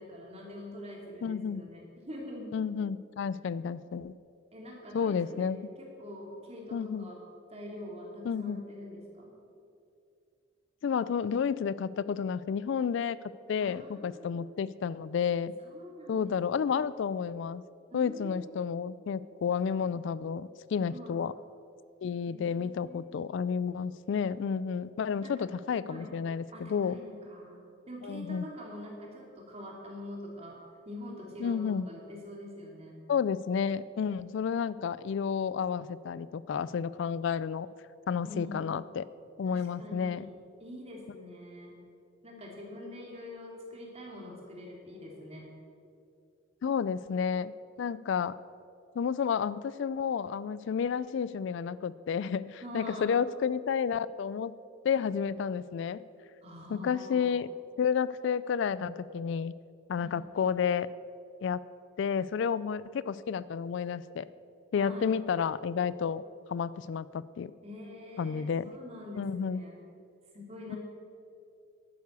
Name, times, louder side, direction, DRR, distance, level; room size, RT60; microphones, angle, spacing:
voice 1, 0.0-2.5 4.5-5.5 5.8-9.3 13.6-14.6 15.6-16.3 17.9-18.6 20.9-21.2 22.3-23.3 25.2-25.5 25.9-26.1 26.5-27.6 27.9-33.0 38.2-38.7 39.4-40.3 40.6-41.7 42.2-45.4 52.6-53.1 56.4-57.4 60.0-60.2 64.7-65.2 67.6-69.8 70.3-70.8, left 1 dB, 35° right, -2 dB, 2.9 m, -45 dB
voice 2, 1.2-1.6 2.5-4.2 4.9-5.7 6.7-7.0 8.2-8.6 10.8-13.2 13.5-15.5 16.1-17.6 17.9-21.3 22.0-27.0 28.0-28.5 31.4-31.9 33.1-37.7 38.1-39.0 39.4-40.2 46.6-48.4 49.0-54.5 54.8-56.0 56.7-57.5 57.8-59.5 59.9-60.9 61.4-61.6 62.0-64.3 64.7-66.2 66.5-67.5 68.2-68.8 69.2-69.7 70.7-70.8, left 6 dB, 65° left, 18 dB, 0.3 m, -31 dB
11.5 x 9.5 x 6.8 m, 2.5 s
head